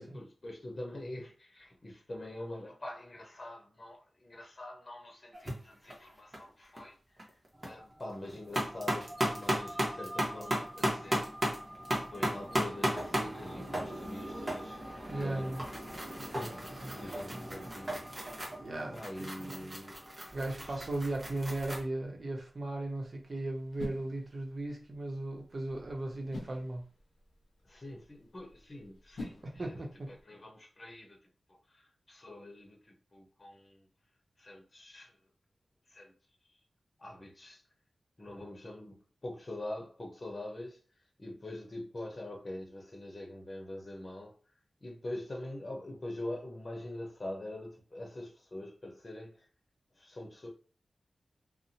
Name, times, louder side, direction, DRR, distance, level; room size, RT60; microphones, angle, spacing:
voice 1, 0.0-11.3 11.5-11.6 12.1-15.6 16.2-16.6 16.9-18.4 18.9-20.0 20.6-20.8 27.6-31.2 31.5-33.9 34.4-35.2 35.9-36.1 36.5-36.6 37.0-37.6 38.2-40.8 41.2-44.4 44.8-49.5 49.9-50.5, left 1 dB, 45° left, 0.8 m, -44 dB
sound 1, 5.3-5.5 5.9-6.4 6.8-6.9 7.2-7.7 8.1-21.8, equal, 35° right, 1.0 m, -36 dB
sound 2, 7.5-21.5, equal, 15° right, 0.5 m, -50 dB
voice 2, 15.0-15.7 18.6-19.8 20.3-26.8 29.4-30.1, right 2 dB, 60° right, 0.8 m, -37 dB
sound 3, 20.9-30.2, left 2 dB, 90° left, 0.6 m, -50 dB
2.7 x 2.2 x 2.7 m
cardioid pair, 55°, 0 cm